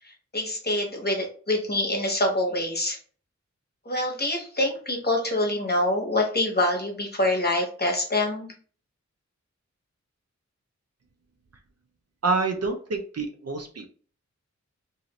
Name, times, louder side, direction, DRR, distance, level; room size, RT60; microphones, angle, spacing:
voice 1, 0.0-3.0 3.8-8.5, left 1 dB, 35° left, 1 dB, 1.0 m, -26 dB
voice 2, 12.2-13.9, right 3 dB, 55° right, 6 dB, 0.5 m, -27 dB
2.7 x 2.5 x 2.9 m, 0.43 s
wide cardioid pair, 50°, 29 cm